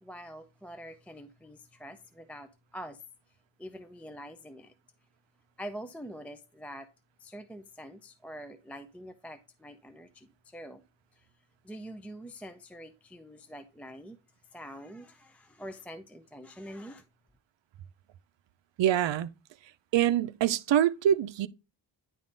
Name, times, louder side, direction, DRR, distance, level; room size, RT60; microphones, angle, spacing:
voice 1, 0.0-3.0 3.6-4.7 5.6-6.9 7.2-10.8 11.1-11.3 11.6-14.2 14.5-17.0, equal, 5° left, 0.3 m, -45 dB
voice 2, 18.8-19.3 19.9-21.5, right 10 dB, 70° right, 0.6 m, -25 dB
10.0 x 3.6 x 3.8 m
wide cardioid pair, 155°, 45 cm